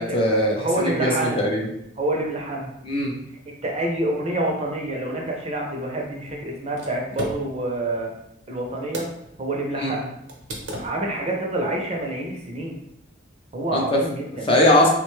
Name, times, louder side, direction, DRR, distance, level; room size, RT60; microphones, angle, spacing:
voice 1, 0.0-1.7 2.8-3.1 9.8-10.0 13.7-14.0 14.4-14.9, left 1 dB, 30° left, -1 dB, 0.5 m, -20 dB
voice 2, 0.6-1.5 2.0-2.7 3.6-8.1 8.5-9.0 9.4-10.1 10.8-12.8 13.5-14.5, right 1 dB, 35° right, 0 dB, 0.5 m, -27 dB
sound 1, 5.6-9.4 9.7-9.8 10.3-11.3, equal, 90° right, 0.7 m, -37 dB
3.3 x 2.2 x 3.0 m, 0.77 s
head